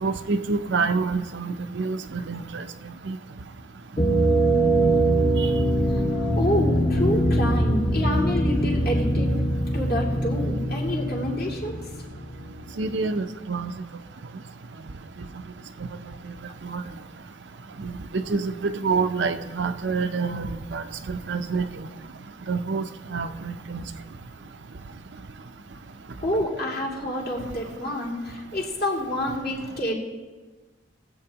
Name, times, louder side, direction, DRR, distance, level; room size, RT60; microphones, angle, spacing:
voice 1, 0.0-2.7 3.1-3.2 12.8-13.7 15.8-15.9 16.6-16.8 17.8-21.7 22.5-22.8 23.1-23.8, right 4 dB, 65° right, 8 dB, 0.6 m, -27 dB
sound 1, 4.0-12.6, right 1 dB, 30° left, 1.2 m, -23 dB
voice 2, 5.9-9.3 9.7-11.9 26.2-29.9, left 1 dB, 50° left, -3 dB, 2.5 m, -28 dB
20.0 x 8.0 x 2.9 m, 1.3 s
head